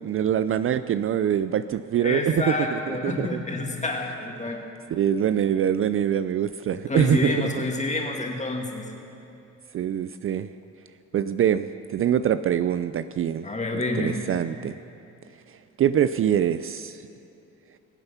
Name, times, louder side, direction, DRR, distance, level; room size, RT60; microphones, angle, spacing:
voice 1, 0.0-3.4 4.9-7.5 9.7-10.5 11.1-13.5 13.7-14.8 15.8-17.0, right 9 dB, 45° right, 13 dB, 0.4 m, -24 dB
voice 2, 2.0-4.6 6.9-8.8 13.4-14.2, left 2 dB, 25° left, 1 dB, 2.3 m, -28 dB
23.0 x 7.9 x 5.7 m, 2.8 s
cardioid pair, 90°, 30 cm